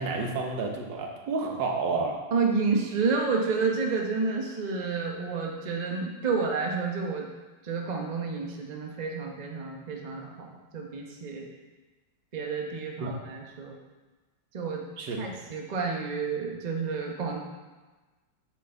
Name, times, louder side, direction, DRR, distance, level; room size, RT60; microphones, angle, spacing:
voice 1, 0.0-2.2 13.0-13.1 15.0-15.2, right 3 dB, 85° right, 2 dB, 1.8 m, -30 dB
voice 2, 2.3-7.3 7.6-11.5 12.3-13.8 14.5-14.8 15.2-17.4, right 4 dB, 30° right, 0 dB, 0.9 m, -30 dB
8.9 x 6.6 x 3.9 m, 1.2 s
omnidirectional pair, 1.9 m